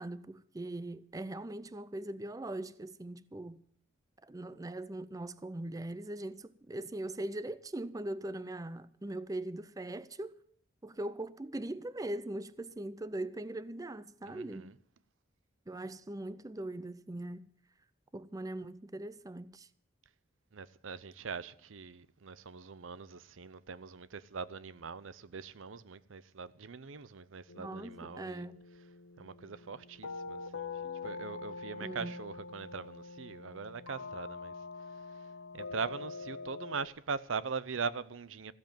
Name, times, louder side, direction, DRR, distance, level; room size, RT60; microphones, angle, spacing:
voice 1, 0.0-3.6 4.2-10.4 10.8-14.7 15.7-17.4 18.1-19.7 27.6-28.6 31.8-32.1, right 1 dB, 20° right, 0.5 m, -40 dB
voice 2, 14.3-14.7 20.5-28.5 29.2-34.5 35.1-35.3 35.5-38.5, right 5 dB, 80° right, 0.7 m, -41 dB
sound 1, 27.5-36.9, left 4 dB, 85° left, 0.8 m, -44 dB
15.0 x 7.9 x 8.9 m
head